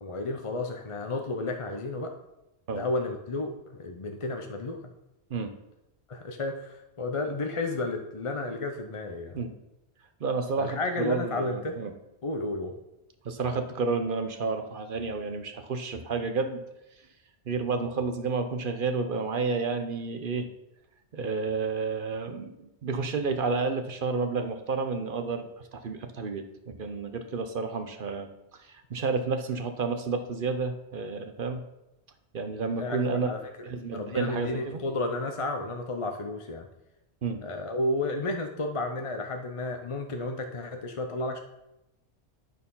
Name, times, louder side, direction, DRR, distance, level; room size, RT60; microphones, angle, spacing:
voice 1, 0.0-2.1 2.7-4.9 6.1-9.4 10.6-11.9 12.2-12.7 32.7-36.7 37.4-41.4, left 2 dB, 35° left, 4 dB, 0.6 m, -32 dB
voice 2, 10.2-11.9 13.2-16.6 17.5-20.5 21.1-28.3 28.6-31.6 32.3-33.3 33.6-34.8 37.2-37.4, right 4 dB, 55° right, 7 dB, 0.9 m, -30 dB
11.0 x 4.5 x 5.5 m, 0.92 s
omnidirectional pair, 1.2 m